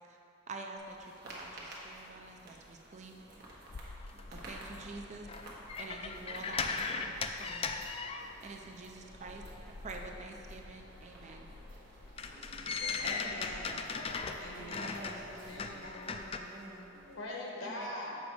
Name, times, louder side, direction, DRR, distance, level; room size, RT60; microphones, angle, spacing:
voice 1, 0.5-3.4 4.3-5.3 5.8-7.7 8.4-9.4 9.8-11.5 17.6-17.9, right 3 dB, 35° right, 2 dB, 0.5 m, -47 dB
sound 1, 0.8-17.2, right 1 dB, 55° right, 1.3 m, -54 dB
sound 2, 3.7-8.7 8.9-16.4, left 5 dB, 30° left, 0.3 m, -39 dB
sound 3, 4.4-15.8, left 1 dB, 60° left, 1.4 m, -61 dB
voice 2, 12.3-15.0 15.4-16.2 17.1-18.2, left 1 dB, 80° left, -2 dB, 1.2 m, -43 dB
voice 3, 14.6-16.9, right 1 dB, 15° right, -4 dB, 1.0 m, -48 dB
6.8 x 5.1 x 4.6 m, 2.9 s
head